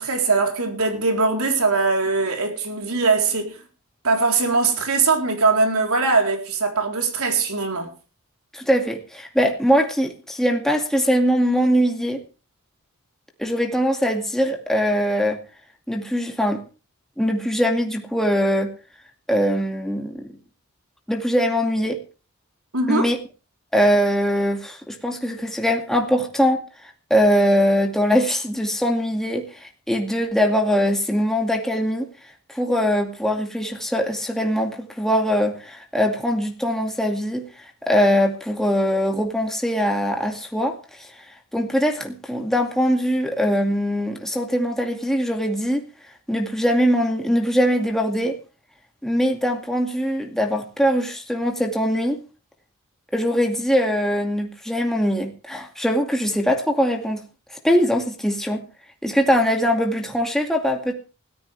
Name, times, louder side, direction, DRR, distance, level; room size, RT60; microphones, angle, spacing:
voice 1, 0.0-3.6 4.0-7.9 22.7-23.1, right 4 dB, 75° right, 3.9 m, -21 dB
voice 2, 8.5-12.2 13.4-15.4 15.9-16.6 17.2-18.7 19.3-20.4 21.1-22.0 22.9-23.2 23.7-32.1 32.5-41.1 41.5-45.8 46.3-48.3 49.0-52.2 53.1-57.3 57.6-58.7 59.0-60.9, equal, ahead, 2.3 m, -22 dB
20.5 x 14.0 x 3.4 m
head